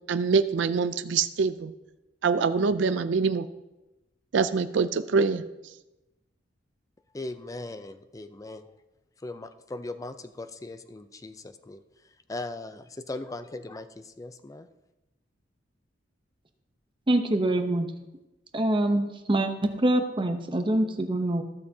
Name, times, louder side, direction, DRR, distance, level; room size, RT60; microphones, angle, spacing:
voice 1, 0.1-1.7 2.2-3.5 4.3-5.4, right 5 dB, 75° right, 11 dB, 0.4 m, -24 dB
voice 2, 7.1-8.7 9.2-11.8 12.3-14.7, left 2 dB, 20° left, 10 dB, 0.4 m, -39 dB
voice 3, 17.1-17.9 18.5-21.4, right 1 dB, 25° right, 6 dB, 0.8 m, -25 dB
15.0 x 6.6 x 2.8 m, 0.99 s
head